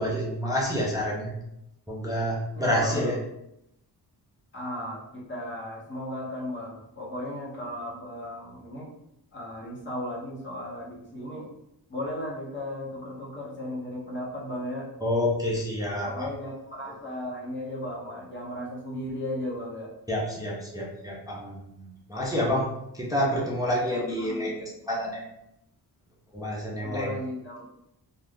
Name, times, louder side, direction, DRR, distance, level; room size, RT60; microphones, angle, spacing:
voice 1, 0.0-1.4 1.9-3.2 15.0-16.3 20.1-25.2 26.3-27.1, equal, 10° right, -4 dB, 0.4 m, -28 dB
voice 2, 2.6-3.1 4.5-8.9 9.3-11.5 11.9-14.9 16.0-19.9 23.8-24.5 26.8-27.6, left 1 dB, 25° left, -5 dB, 0.9 m, -35 dB
2.5 x 2.3 x 3.5 m, 0.82 s
wide cardioid pair, 170°, 43 cm